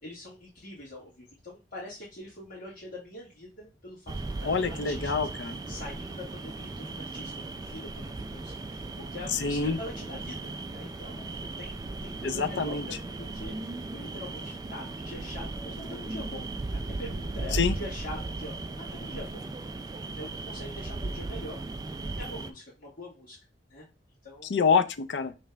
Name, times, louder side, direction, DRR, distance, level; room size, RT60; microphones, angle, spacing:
voice 1, 0.0-5.3 5.7-19.5 20.1-21.6 22.2-23.4 23.7-23.9 24.2-24.5, left 1 dB, 50° left, 1.6 m, -44 dB
sound 1, 4.1-22.5, right 2 dB, 20° right, 0.3 m, -37 dB
voice 2, 4.5-5.6 9.3-9.8 12.2-12.9 17.5-17.8 24.5-25.3, left 5 dB, 80° left, 0.5 m, -26 dB
5.0 x 3.2 x 3.3 m
head